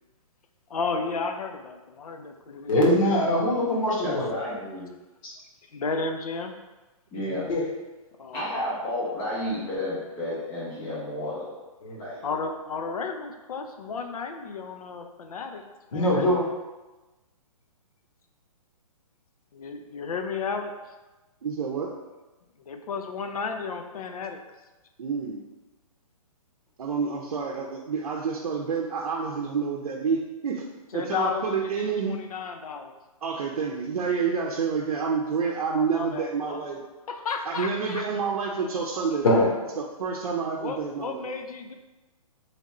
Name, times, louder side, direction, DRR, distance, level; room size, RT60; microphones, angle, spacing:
voice 1, 0.7-2.8 5.7-6.5 8.2-8.6 12.2-15.6 15.9-16.4 19.5-20.7 22.7-24.4 30.9-32.9 34.4-34.6 35.7-36.6 37.1-38.0 38.6-39.3 40.6-41.8, left 5 dB, 80° left, 5 dB, 0.6 m, -33 dB
voice 2, 2.7-4.3 7.5-7.6 11.8-12.0 15.9-16.4 39.2-39.5, left 1 dB, 65° left, -4 dB, 1.3 m, -22 dB
voice 3, 4.0-4.9 7.1-7.5 8.3-11.5 12.0-12.3, left 1 dB, 10° left, -9 dB, 0.5 m, -31 dB
voice 4, 21.4-21.9 25.0-25.4 26.8-30.6 30.9-32.2 33.2-36.8 37.4-39.5 39.8-41.3, right 5 dB, 80° right, -2 dB, 0.6 m, -28 dB
3.3 x 2.5 x 4.1 m, 1.1 s
hypercardioid pair, 170°, 19 cm